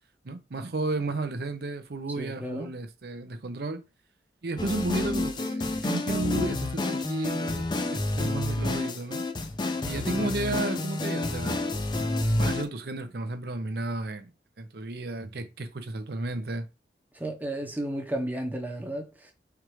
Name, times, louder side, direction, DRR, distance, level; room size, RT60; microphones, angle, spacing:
voice 1, 0.2-3.8 4.4-9.2 9.8-11.6 12.4-14.3 14.6-16.7, right 2 dB, 60° right, 0.6 m, -33 dB
voice 2, 2.2-2.7 17.1-19.3, right 1 dB, 10° right, 0.7 m, -33 dB
sound 1, 4.6-12.6, left 2 dB, 25° left, 0.4 m, -29 dB
4.6 x 2.4 x 3.0 m
head